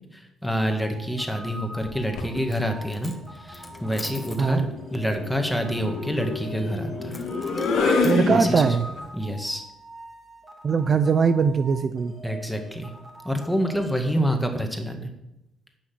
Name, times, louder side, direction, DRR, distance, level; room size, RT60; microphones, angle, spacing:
voice 1, 0.1-4.6 4.9-7.1 8.3-8.8 9.1-9.6 12.2-12.9 13.2-15.1, equal, 5° left, 4 dB, 2.0 m, -27 dB
sound 1, 0.6-14.1, right 1 dB, 30° right, 2.2 m, -44 dB
sound 2, 1.9-2.4 3.7-9.0, left 3 dB, 75° left, 2.7 m, -28 dB
Coin (dropping), 2.4-2.7 2.9-4.5 7.1-8.2, left 2 dB, 20° left, 1.5 m, -43 dB
voice 2, 8.0-8.9 10.6-12.1, right 5 dB, 45° right, 11 dB, 0.6 m, -21 dB
10.0 x 6.2 x 8.6 m, 0.89 s
cardioid pair, 90°, 0 cm